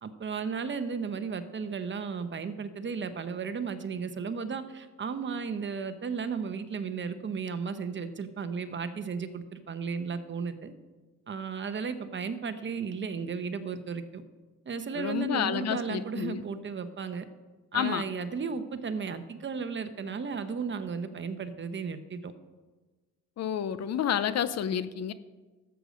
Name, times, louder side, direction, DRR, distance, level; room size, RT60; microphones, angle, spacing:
voice 1, 0.0-10.7 11.3-14.2 14.7-17.2 17.7-22.3, right 5 dB, 40° right, 10 dB, 1.0 m, -34 dB
voice 2, 15.0-16.4 17.7-18.0 23.4-25.1, left 9 dB, 60° left, 14 dB, 0.7 m, -30 dB
13.0 x 8.0 x 5.2 m, 1.3 s
cardioid pair, 90°, 30 cm